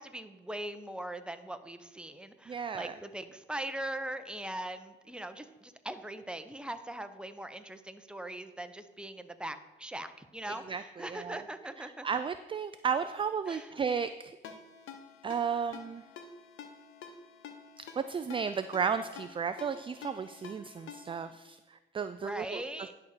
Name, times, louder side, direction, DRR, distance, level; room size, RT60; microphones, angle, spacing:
voice 1, 0.0-12.1 13.5-13.7 22.2-22.9, right 1 dB, 5° right, 9 dB, 0.8 m, -41 dB
voice 2, 2.5-3.0 10.7-11.4 11.8-14.4 15.2-16.0 17.8-22.6, right 6 dB, 25° right, 11 dB, 0.4 m, -34 dB
Ringtone, 14.4-21.3, left 6 dB, 85° left, 0.9 m, -49 dB
10.5 x 4.2 x 6.6 m, 1.2 s
cardioid pair, 90°, 20 cm